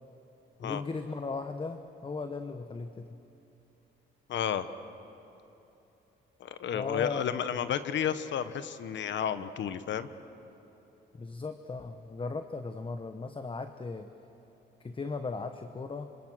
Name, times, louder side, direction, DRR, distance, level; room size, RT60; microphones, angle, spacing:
voice 1, 0.6-3.2 6.7-7.2 11.1-14.1 14.8-16.1, left 4 dB, 25° left, 8 dB, 1.0 m, -37 dB
voice 2, 4.3-4.7 6.4-10.1, left 9 dB, 70° left, 12 dB, 1.2 m, -32 dB
26.5 x 26.0 x 6.3 m, 3.0 s
cardioid pair, 90°, 20 cm